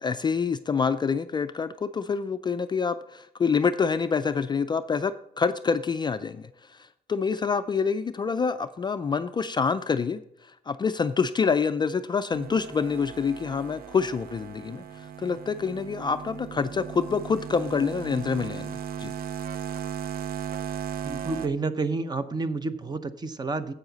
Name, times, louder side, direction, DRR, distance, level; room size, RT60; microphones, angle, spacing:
voice 1, 0.0-19.1, left 5 dB, 25° left, 11 dB, 0.3 m, -27 dB
sound 1, 12.3-21.5, right 8 dB, 65° right, 0.7 m, -37 dB
voice 2, 21.0-23.7, right 3 dB, 25° right, 12 dB, 0.7 m, -30 dB
10.5 x 8.1 x 4.0 m, 0.76 s
cardioid pair, 140°, 17 cm